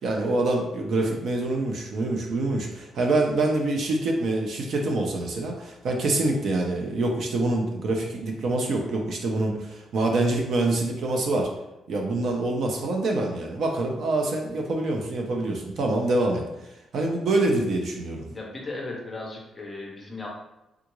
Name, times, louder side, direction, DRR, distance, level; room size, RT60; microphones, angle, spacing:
voice 1, 0.0-11.5 11.9-18.3, right 2 dB, 50° right, 1 dB, 0.5 m, -26 dB
voice 2, 18.3-20.3, left 2 dB, 20° left, -1 dB, 0.6 m, -36 dB
3.5 x 2.4 x 3.0 m, 0.93 s
cardioid pair, 180°, 0 cm